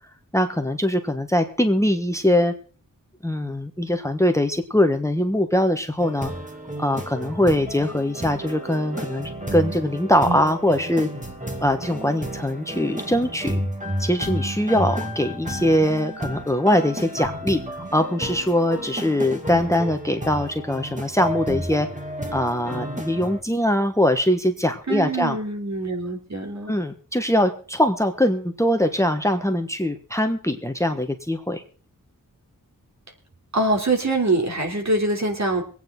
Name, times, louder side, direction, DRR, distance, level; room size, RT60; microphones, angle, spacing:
voice 1, 0.3-2.5 3.2-6.3 6.8-11.1 11.6-13.6 14.0-17.6 17.9-21.9 22.3-25.4 26.7-31.6, left 1 dB, 10° left, 7 dB, 1.3 m, -22 dB
sound 1, 6.0-23.4, equal, 20° right, 2.4 m, -32 dB
voice 2, 24.9-26.7 33.5-35.6, right 2 dB, 50° right, 2 dB, 3.4 m, -24 dB
23.5 x 9.3 x 3.9 m, 0.40 s
wide cardioid pair, 75°, 34 cm